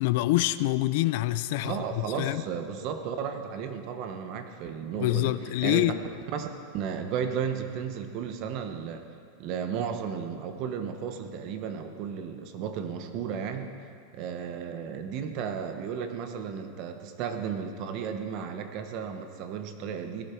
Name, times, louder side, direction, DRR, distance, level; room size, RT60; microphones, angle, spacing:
voice 1, 0.0-2.4 5.0-6.0, left 17 dB, 60° left, 0.4 m, -26 dB
voice 2, 1.6-5.9 6.3-6.5 6.7-9.0 9.4-13.7 14.1-20.3, right 7 dB, 45° right, 1.1 m, -34 dB
17.5 x 11.5 x 4.6 m
supercardioid pair, 150°, 0 cm